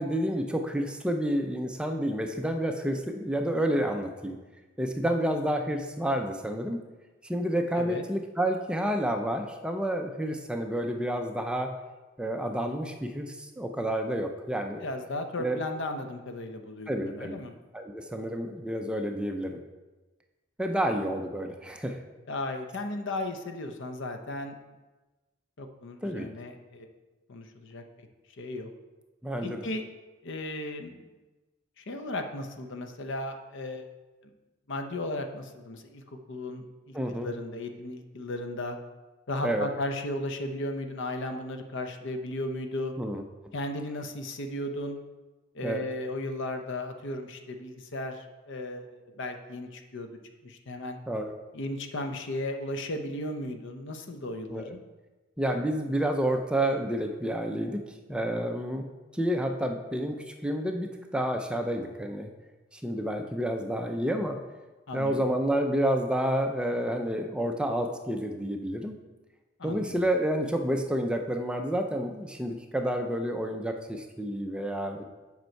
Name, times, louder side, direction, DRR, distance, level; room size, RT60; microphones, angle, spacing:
voice 1, 0.0-4.4 4.8-6.8 7.2-11.7 12.2-14.8 15.4-15.6 16.9-17.3 17.7-19.6 20.6-22.0 26.0-26.3 29.2-29.7 36.9-37.3 39.4-39.7 43.0-43.2 45.6-45.8 51.1-51.3 54.5-54.7 55.4-57.8 58.1-58.9 59.1-62.3 62.7-64.4 64.9-69.0 69.6-75.0, right 1 dB, 5° right, 4 dB, 0.5 m, -29 dB
voice 2, 14.8-17.5 22.3-24.5 25.6-26.9 27.3-28.1 28.4-28.7 29.4-29.8 30.2-31.0 31.8-33.8 34.7-38.8 39.3-42.9 43.5-45.0 45.5-50.1 50.4-51.0 51.5-54.8 64.9-65.2 69.6-70.0, left 1 dB, 60° left, 6 dB, 0.7 m, -35 dB
7.8 x 5.3 x 4.5 m, 1.2 s
head